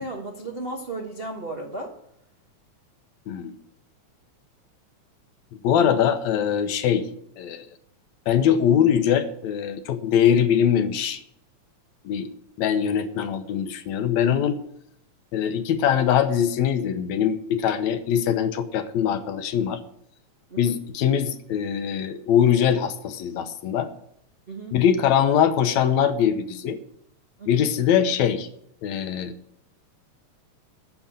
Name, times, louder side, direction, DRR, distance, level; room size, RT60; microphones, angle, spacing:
voice 1, 0.0-1.9 20.5-20.8 24.5-24.7 27.4-27.6, right 2 dB, 70° right, -1 dB, 0.5 m, -34 dB
voice 2, 5.6-7.1 7.4-7.7 8.3-11.2 12.1-12.3 12.6-14.6 15.3-19.8 20.6-23.9 24.7-26.8 27.5-28.5 28.8-29.3, left 9 dB, 75° left, 9 dB, 2.1 m, -22 dB
9.6 x 7.0 x 8.7 m, 0.74 s
omnidirectional pair, 3.3 m